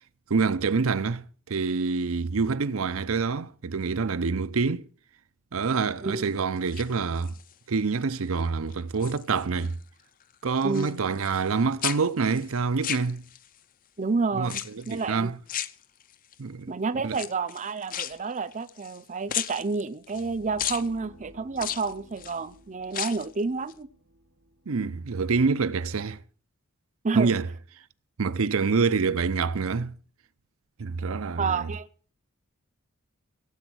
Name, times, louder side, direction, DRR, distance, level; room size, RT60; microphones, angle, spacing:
voice 1, 0.3-4.9 5.5-7.3 7.7-9.8 10.4-13.2 14.3-15.4 16.4-16.7 17.0-17.2 24.7-26.2 27.1-27.5 28.2-30.0 30.8-31.7, right 4 dB, 70° right, 0.6 m, -26 dB
voice 2, 6.0-6.4 10.6-11.0 14.0-15.3 16.7-23.9 27.0-27.3 31.4-31.9, right 4 dB, 35° right, 0.6 m, -30 dB
sound 1, 6.6-7.5 8.0-8.4 8.7-9.7 10.0-11.5 11.8-13.6 14.4-15.1 15.5-16.3 17.1-19.0 19.3-20.3 20.6-20.9 21.6-22.4 22.8-23.3 23.7-23.8, left 10 dB, 40° left, 0.6 m, -35 dB
sound 2, 19.9-25.9, equal, 90° right, 2.3 m, -54 dB
16.5 x 8.0 x 6.1 m
head